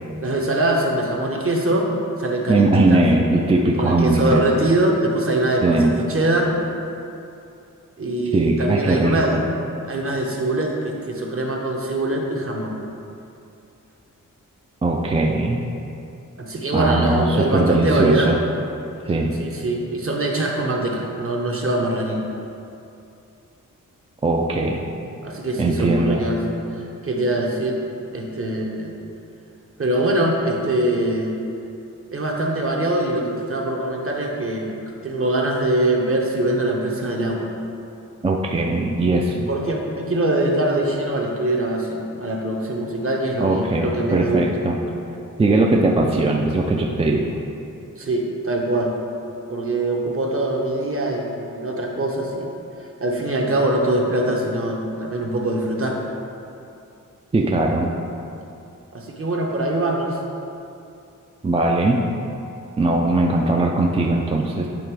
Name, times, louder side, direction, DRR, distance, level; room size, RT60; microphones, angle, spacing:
voice 1, 0.2-1.9 2.2-3.0 3.8-6.6 8.0-9.4 9.8-12.7 16.4-18.3 19.4-22.3 25.2-26.4 26.7-27.8 28.1-28.9 29.8-31.3 32.1-34.8 35.0-37.5 39.5-44.5 48.0-48.9 49.5-52.5 52.8-56.0 58.9-60.2, right 1 dB, 40° right, -1 dB, 0.9 m, -23 dB
voice 2, 2.5-4.6 5.6-6.0 8.3-9.4 14.8-15.6 16.7-18.4 19.1-19.3 24.2-24.8 25.6-26.3 38.2-39.5 43.4-44.8 45.4-47.2 57.3-57.9 61.4-62.0 62.8-64.7, right 2 dB, 20° right, 0 dB, 0.3 m, -19 dB
8.7 x 3.3 x 4.6 m, 2.7 s
wide cardioid pair, 145°, 33 cm